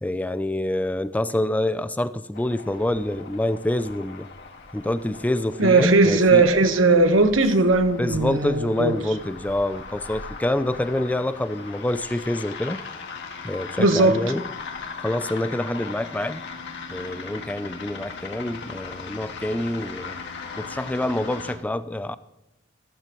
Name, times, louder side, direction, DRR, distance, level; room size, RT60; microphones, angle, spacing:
voice 1, 0.0-4.3 4.7-6.5 8.0-12.8 13.4-14.4 15.0-16.4 16.9-20.2 20.6-22.1, left 1 dB, 10° left, 13 dB, 0.3 m, -26 dB
sound 1, 2.3-21.6, left 5 dB, 60° left, 1.7 m, -39 dB
voice 2, 5.6-8.9 13.8-14.2, right 3 dB, 70° right, 8 dB, 1.2 m, -18 dB
14.5 x 13.5 x 3.0 m, 0.94 s
head